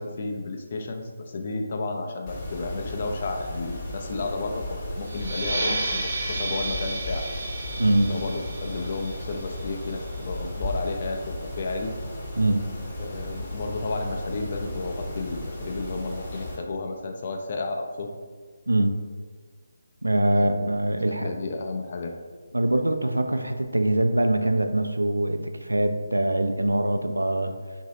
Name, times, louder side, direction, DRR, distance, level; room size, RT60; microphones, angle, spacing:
voice 1, 0.0-7.3 8.1-11.9 13.0-18.1 20.3-20.7 21.1-22.1, left 3 dB, 40° left, 3 dB, 0.4 m, -32 dB
Mechanisms, 2.3-16.6, left 1 dB, 20° left, 0.9 m, -35 dB
sound 1, 5.0-10.3, right 2 dB, 35° right, 0.7 m, -32 dB
voice 2, 7.8-8.1 12.4-12.6 18.7-19.0 20.0-21.3 22.5-27.5, right 1 dB, 75° right, 7 dB, 0.3 m, -23 dB
3.0 x 2.6 x 4.2 m, 1.5 s
figure-of-eight pair, 150°, 0 cm